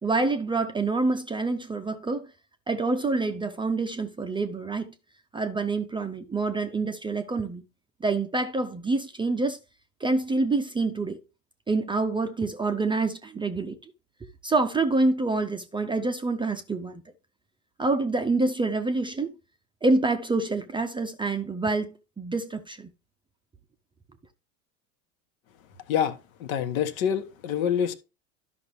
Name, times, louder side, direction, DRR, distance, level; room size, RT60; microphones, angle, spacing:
voice 1, 0.0-2.3 2.7-4.9 5.3-7.6 8.0-9.6 10.0-11.2 11.7-13.8 14.4-17.0 17.8-19.3 19.8-22.9, right 3 dB, 10° right, 0.6 m, -27 dB
voice 2, 26.4-27.9, left 8 dB, 65° left, 1.3 m, -26 dB
12.0 x 5.7 x 3.1 m
hypercardioid pair, 90°, 45 cm